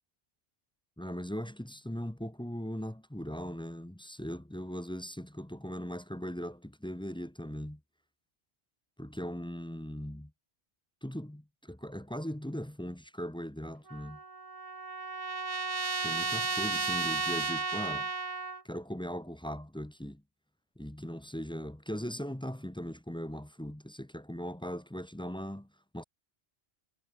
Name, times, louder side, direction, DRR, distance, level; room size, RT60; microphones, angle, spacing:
voice 1, 1.0-7.8 9.0-10.3 11.0-14.2 16.0-18.1 18.6-20.2 20.8-25.7 25.9-26.0, equal, 5° left, 0.8 m, -39 dB
Trumpet, 13.9-18.6, right 4 dB, 35° right, 1.2 m, -33 dB
omnidirectional pair, 1.1 m